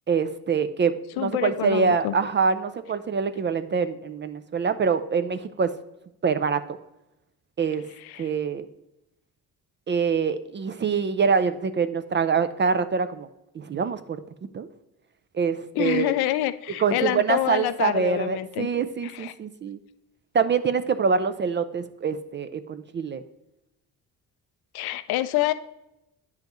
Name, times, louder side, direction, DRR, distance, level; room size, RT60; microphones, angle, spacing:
voice 1, 0.1-5.7 6.2-6.8 7.6-7.9 8.2-8.6 9.9-13.3 13.6-14.2 14.5-14.7 15.3-16.2 16.8-19.8 20.3-23.2, right 5 dB, 30° right, 11 dB, 0.4 m, -25 dB
voice 2, 1.2-2.2 8.0-8.3 15.8-18.7 19.0-19.3 24.7-25.5, left 15 dB, 85° left, 13 dB, 0.5 m, -27 dB
8.9 x 5.6 x 3.0 m, 0.90 s
cardioid pair, 100°, 37 cm